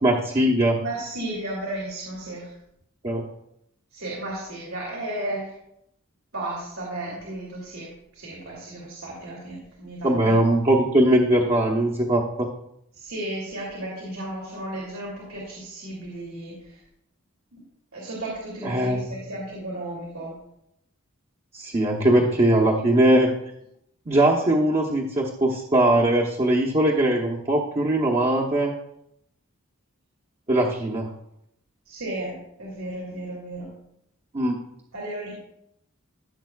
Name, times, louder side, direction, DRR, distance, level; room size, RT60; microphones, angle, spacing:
voice 1, 0.0-0.8 3.0-3.2 10.0-12.5 18.6-19.0 21.5-23.3 24.1-28.7 30.5-31.1 34.3-34.6, right 1 dB, 30° right, -2 dB, 0.9 m, -20 dB
voice 2, 0.8-2.5 3.9-5.5 6.3-10.4 12.9-16.8 17.9-20.3 25.9-26.0 31.8-33.7 34.9-35.4, right 1 dB, 85° right, -5 dB, 2.7 m, -34 dB
15.5 x 7.3 x 2.4 m, 0.78 s
head